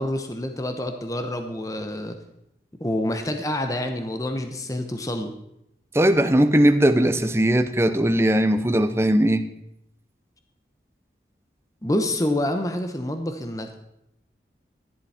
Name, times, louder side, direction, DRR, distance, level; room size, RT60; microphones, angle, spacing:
voice 1, 0.0-2.1 2.8-5.3 11.8-13.7, left 1 dB, 20° left, 6 dB, 1.0 m, -27 dB
voice 2, 5.9-9.4, right 1 dB, 15° right, 9 dB, 0.7 m, -19 dB
14.5 x 11.0 x 4.3 m, 0.81 s
head